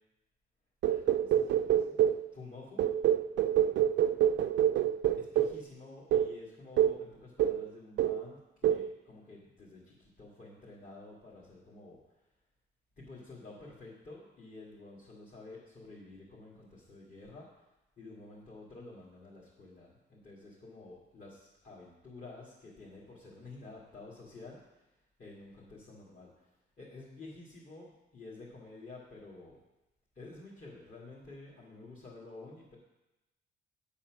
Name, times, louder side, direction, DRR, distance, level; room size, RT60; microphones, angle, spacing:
sound 1, 0.8-2.3 2.8-5.6 6.1-6.3 6.8-7.0 7.4-7.7 8.0-8.3 8.6-8.9, right 10 dB, 65° right, 0.4 m, -27 dB
voice 1, 0.9-2.0 2.3-2.8 5.2-12.2 13.0-17.7 18.0-24.9 25.2-26.5 26.8-29.6 30.2-32.8, left 3 dB, 45° left, -7 dB, 2.2 m, -50 dB
8.7 x 4.2 x 6.1 m, 0.99 s
cardioid pair, 90°, 20 cm